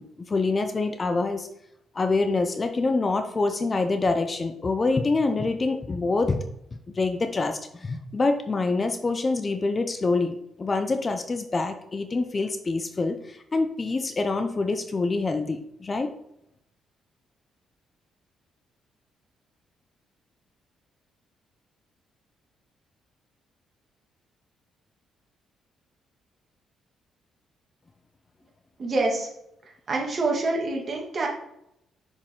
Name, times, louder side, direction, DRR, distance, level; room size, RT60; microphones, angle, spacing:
voice 1, 0.0-1.5 1.9-6.4 7.0-16.1, left 3 dB, 30° left, 8 dB, 0.6 m, -26 dB
voice 2, 28.8-29.3 29.9-31.3, right 2 dB, 45° right, 0 dB, 2.1 m, -26 dB
6.3 x 4.9 x 3.7 m, 0.79 s
cardioid pair, 90°, 0 cm